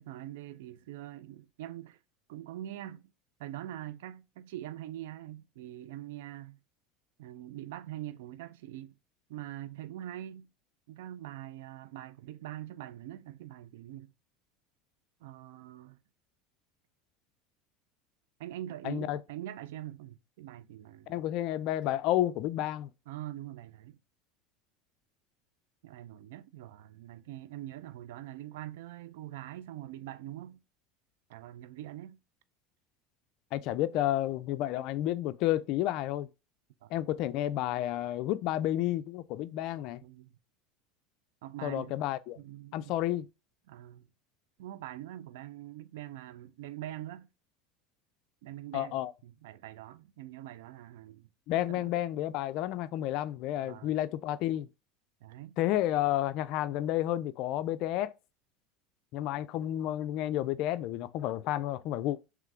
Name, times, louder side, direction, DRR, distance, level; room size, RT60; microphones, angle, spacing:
voice 1, 0.0-2.0 2.3-3.0 3.4-6.6 7.2-8.9 9.3-10.5 10.9-14.1 15.2-16.0 18.4-21.3 23.1-24.0 25.8-30.6 31.3-32.2 36.8-36.9 40.0-40.4 41.4-41.9 42.4-43.0 43.7-44.1 44.6-47.3 48.4-51.9 53.6-53.9 55.2-55.6, right 13 dB, 85° right, 0.4 m, -44 dB
voice 2, 18.8-19.2 21.1-22.9 33.5-36.3 36.9-40.0 41.6-42.4 42.7-43.3 48.7-49.1 51.5-54.7 55.6-58.1 59.1-62.2, left 13 dB, 60° left, 0.4 m, -31 dB
3.7 x 3.1 x 3.3 m
supercardioid pair, 115°, 0 cm